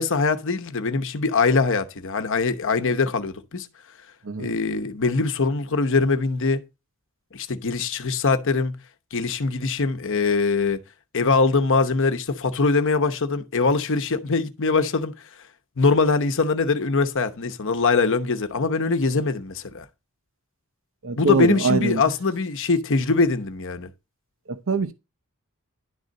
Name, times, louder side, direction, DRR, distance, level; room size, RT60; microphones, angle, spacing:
voice 1, 0.0-3.7 4.4-6.6 7.3-8.8 9.1-10.8 11.1-15.1 15.8-19.8 21.2-23.9, left 4 dB, 60° left, 0.9 m, -22 dB
voice 2, 4.2-4.6 21.0-22.0 24.5-24.9, right 4 dB, 65° right, 0.8 m, -23 dB
11.0 x 3.9 x 6.4 m
head